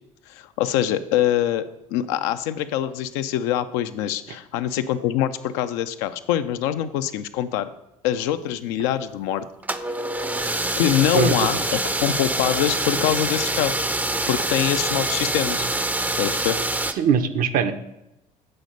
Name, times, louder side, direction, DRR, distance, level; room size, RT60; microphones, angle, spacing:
voice 1, 0.3-1.7 1.9-7.7 8.0-9.4 10.8-13.9 14.3-15.7 16.2-16.6, left 11 dB, 75° left, 10 dB, 0.5 m, -24 dB
sound 1, 9.6-16.9, right 2 dB, 10° right, 0.5 m, -25 dB
voice 2, 11.1-11.6 17.0-17.7, right 7 dB, 55° right, 10 dB, 0.7 m, -21 dB
7.9 x 4.1 x 5.2 m, 0.89 s
hypercardioid pair, 65°, 17 cm